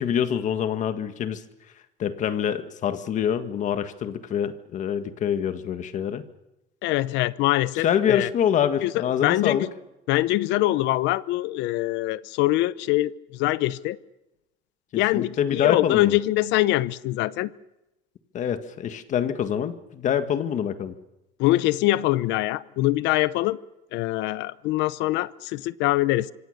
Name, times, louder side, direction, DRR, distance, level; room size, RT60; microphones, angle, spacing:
voice 1, 0.0-1.4 2.0-6.2 7.8-9.7 14.9-16.2 18.3-20.9, left 9 dB, 40° left, 1.7 m, -25 dB
voice 2, 6.8-8.3 8.8-8.9 9.2-9.7 10.1-14.0 14.9-17.5 21.4-23.6 23.9-26.3, left 17 dB, 70° left, 0.8 m, -23 dB
26.0 x 25.0 x 6.6 m
cardioid pair, 165°, 19 cm